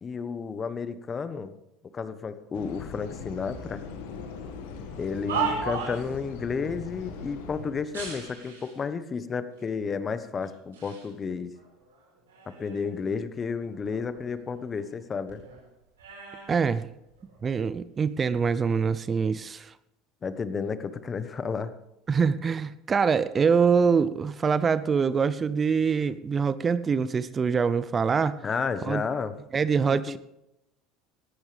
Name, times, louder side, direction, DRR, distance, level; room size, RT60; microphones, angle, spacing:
voice 1, 0.0-1.5 1.9-3.8 5.0-11.5 12.5-15.4 20.2-21.7 28.4-29.3 29.9-30.2, left 5 dB, 30° left, 12 dB, 1.3 m, -32 dB
sound 1, 2.5-7.8, left 5 dB, 75° left, 1.9 m, -40 dB
sound 2, 4.9-6.2 7.9-8.8 9.6-9.7 10.4-11.1 11.5-13.0 13.4-15.0 15.3-17.4 18.2-18.5, right 6 dB, 90° right, 5.3 m, -37 dB
voice 2, 16.5-16.9 17.4-19.7 22.1-28.4 28.8-29.0 29.5-30.2, right 6 dB, 30° right, 16 dB, 0.7 m, -24 dB
18.0 x 14.0 x 3.5 m, 0.87 s
hypercardioid pair, 75°, 0 cm